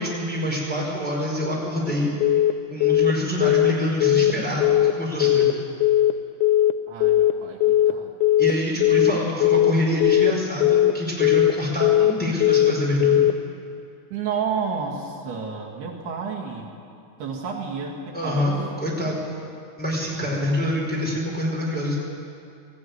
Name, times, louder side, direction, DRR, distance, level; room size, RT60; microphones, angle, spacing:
voice 1, 0.0-2.1 2.7-5.5 8.4-13.2 18.1-18.5 18.8-19.2 19.8-21.9, equal, ahead, -4 dB, 4.0 m, -26 dB
Telephone, 2.2-2.5 2.8-3.1 3.4-3.7 4.0-4.3 4.6-4.9 5.2-5.5 5.8-6.1 6.4-6.7 7.0-7.3 7.6-7.9 8.2-8.5 8.8-9.1 9.4-9.7 10.0-10.3 10.6-10.9 11.2-11.5 11.8-12.1 12.4-12.7 13.0-13.3, left 13 dB, 80° left, 2.3 m, -18 dB
voice 2, 6.9-8.2 14.1-16.7 17.2-18.5, right 5 dB, 70° right, -2 dB, 3.8 m, -31 dB
19.0 x 15.0 x 9.5 m, 2.5 s
omnidirectional pair, 4.9 m